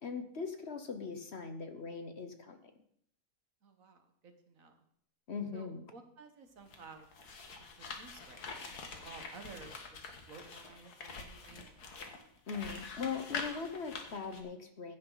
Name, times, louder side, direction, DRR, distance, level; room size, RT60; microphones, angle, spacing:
voice 1, 0.0-2.7 5.3-5.9 12.5-15.0, left 5 dB, 50° left, 7 dB, 1.1 m, -40 dB
voice 2, 3.6-4.8 5.5-7.1 7.7-8.7 9.0-12.0, right 4 dB, 60° right, 6 dB, 1.7 m, -54 dB
sound 1, 6.6-14.4, left 4 dB, 85° left, 2.0 m, -45 dB
15.5 x 9.3 x 4.0 m, 0.66 s
omnidirectional pair, 1.6 m